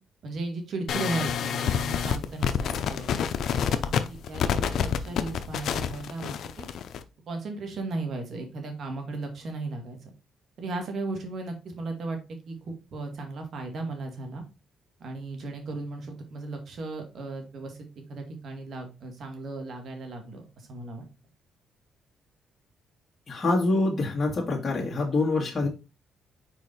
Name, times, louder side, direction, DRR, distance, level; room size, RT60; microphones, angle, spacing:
voice 1, 0.2-3.1 3.5-6.7 7.3-10.1 10.6-12.2 12.5-14.4 15.0-21.1, right 3 dB, 60° right, 2.0 m, -36 dB
sound 1, 0.9-7.0, left 8 dB, 70° left, 0.6 m, -28 dB
voice 2, 23.3-25.7, left 2 dB, 30° left, 1.8 m, -25 dB
4.9 x 4.7 x 4.2 m
cardioid pair, 90°, 0 cm